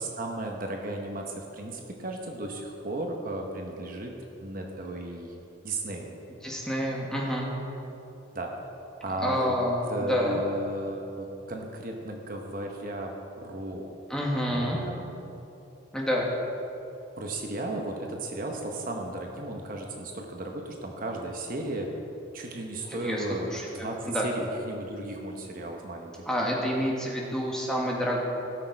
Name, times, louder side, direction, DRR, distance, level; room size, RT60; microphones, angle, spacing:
voice 1, 0.0-4.1 4.4-5.3 5.6-6.1 8.3-8.7 9.0-9.5 9.9-13.1 13.4-13.9 14.5-15.3 17.2-21.9 22.3-26.3, right 1 dB, 45° right, 1 dB, 1.0 m, -35 dB
voice 2, 6.4-7.5 9.2-10.4 14.1-14.8 15.9-16.3 22.9-23.2 23.5-24.3 26.3-28.3, equal, 5° left, -3 dB, 1.4 m, -28 dB
16.5 x 6.5 x 4.6 m, 2.9 s
head